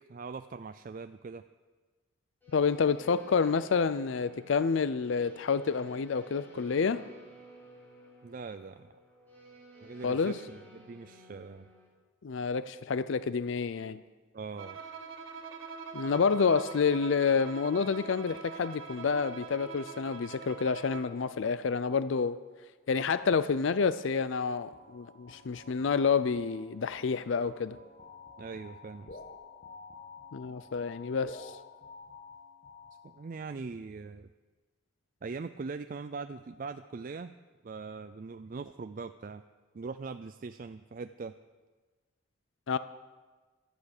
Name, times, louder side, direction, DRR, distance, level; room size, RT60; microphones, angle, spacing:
voice 1, 0.1-1.4 8.2-8.9 9.8-11.7 14.3-14.8 28.4-29.2 33.0-34.3 35.2-37.3 37.6-39.4 39.7-41.3, right 4 dB, 40° right, 10 dB, 0.4 m, -41 dB
sound 1, 2.4-11.9, equal, 10° left, 4.1 m, -55 dB
voice 2, 2.5-7.0 10.0-10.3 12.2-14.0 15.9-22.4 22.9-27.8 30.3-31.5 42.7-42.8, left 5 dB, 65° left, 14 dB, 0.4 m, -28 dB
Bowed string instrument, 14.6-21.2, right 5 dB, 70° right, 2.0 m, -44 dB
sound 2, 24.7-33.4, left 4 dB, 45° left, 1.3 m, -51 dB
17.0 x 12.0 x 6.6 m, 1.4 s
head